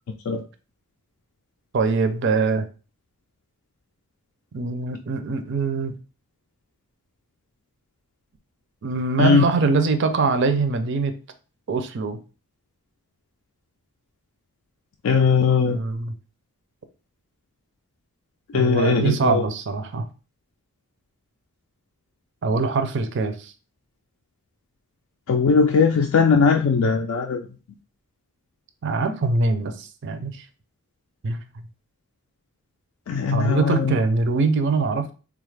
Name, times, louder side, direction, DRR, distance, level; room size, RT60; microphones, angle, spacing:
voice 1, 1.7-2.6 4.5-5.9 8.8-11.1 11.7-12.2 15.6-16.1 18.5-20.1 22.4-23.5 28.8-30.4 31.2-31.4 33.3-35.1, right 4 dB, 55° right, 9 dB, 0.4 m, -23 dB
voice 2, 15.0-15.8 18.5-19.4 25.3-27.4 33.1-33.9, left 5 dB, 70° left, 3 dB, 0.3 m, -19 dB
3.7 x 2.4 x 3.2 m, 0.35 s
head